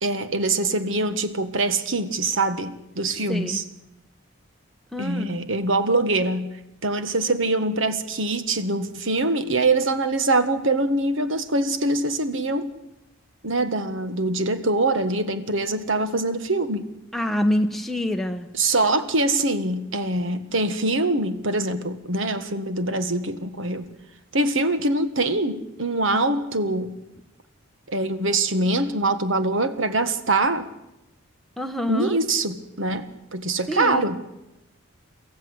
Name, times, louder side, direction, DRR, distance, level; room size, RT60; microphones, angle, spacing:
voice 1, 0.0-3.6 5.0-6.5 6.8-12.7 13.4-16.9 18.5-23.8 24.3-27.0 27.9-30.7 31.9-34.2, right 2 dB, 65° right, 11 dB, 1.7 m, -24 dB
voice 2, 3.3-3.6 4.9-5.4 17.1-18.5 31.6-32.2 33.7-34.1, left 1 dB, ahead, 5 dB, 1.2 m, -26 dB
24.0 x 15.0 x 8.1 m, 0.91 s
head